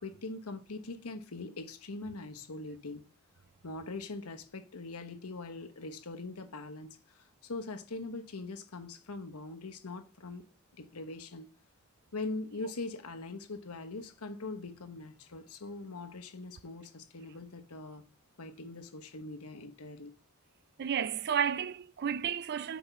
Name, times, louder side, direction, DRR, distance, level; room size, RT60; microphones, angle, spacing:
voice 1, 0.0-3.1 3.6-10.4 10.7-11.5 12.1-18.1 18.4-20.1, left 3 dB, 80° left, 1.1 m, -42 dB
voice 2, 20.8-22.8, right 8 dB, 45° right, 0.4 m, -32 dB
6.1 x 5.3 x 5.4 m
head